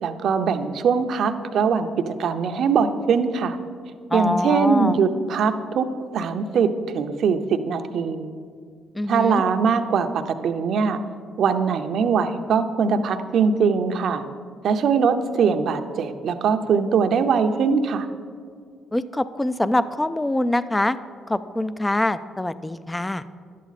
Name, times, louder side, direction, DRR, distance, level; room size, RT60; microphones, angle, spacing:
voice 1, 0.0-3.6 4.1-5.9 6.1-8.3 9.1-11.0 11.4-14.2 14.6-18.1, right 6 dB, 65° right, 8 dB, 0.6 m, -22 dB
voice 2, 4.1-5.0 8.9-9.4 18.9-21.0 21.3-23.2, left 1 dB, 10° left, 14 dB, 0.3 m, -24 dB
11.0 x 8.4 x 4.1 m, 2.1 s
cardioid pair, 105°, 0 cm